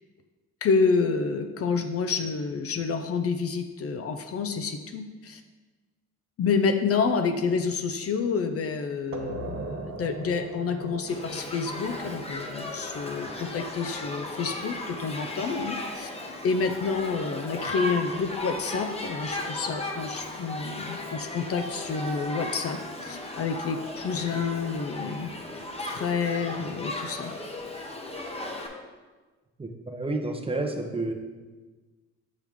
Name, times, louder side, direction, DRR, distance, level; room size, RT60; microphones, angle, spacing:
voice 1, 0.6-5.4 6.4-16.1 16.4-25.3 25.8-27.3, left 5 dB, 50° left, 7 dB, 0.5 m, -28 dB
sound 1, 9.1-14.5, right 3 dB, 45° right, 0.9 m, -40 dB
Shout / Human group actions, 11.1-28.7, left 1 dB, 20° left, 0.9 m, -36 dB
voice 2, 29.6-31.1, right 2 dB, 20° right, 3 dB, 0.8 m, -30 dB
7.3 x 4.6 x 3.6 m, 1.3 s
cardioid pair, 90°, 30 cm